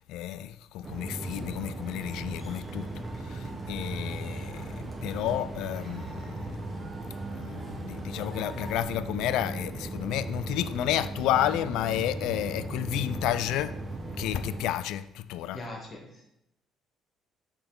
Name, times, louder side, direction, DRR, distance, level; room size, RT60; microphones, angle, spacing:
voice 1, 0.1-6.6 7.3-13.7 14.2-15.6, left 12 dB, 85° left, 0.3 m, -31 dB
sound 1, 0.8-14.7, right 2 dB, 25° right, 0.8 m, -37 dB
Cheering / Crowd, 1.2-8.8, right 1 dB, 10° right, 1.3 m, -49 dB
voice 2, 15.5-16.3, left 1 dB, 30° left, 1.1 m, -41 dB
6.6 x 6.0 x 3.8 m
cardioid pair, 160°, 0 cm